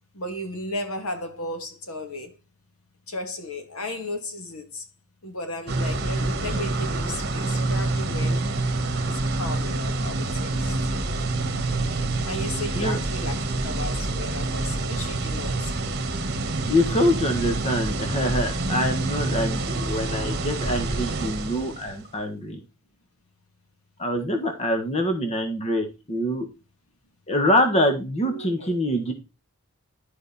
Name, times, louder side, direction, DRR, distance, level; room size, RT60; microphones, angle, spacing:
voice 1, 0.1-2.3 3.1-4.8 5.2-8.4 9.0-10.7 12.2-15.7 28.2-28.7, left 1 dB, 80° left, 2.3 m, -35 dB
sound 1, 5.7-22.0, right 2 dB, 50° right, 1.4 m, -27 dB
voice 2, 16.7-22.6 24.0-26.5 27.3-29.1, left 1 dB, 30° left, 1.4 m, -25 dB
12.5 x 5.0 x 4.1 m
head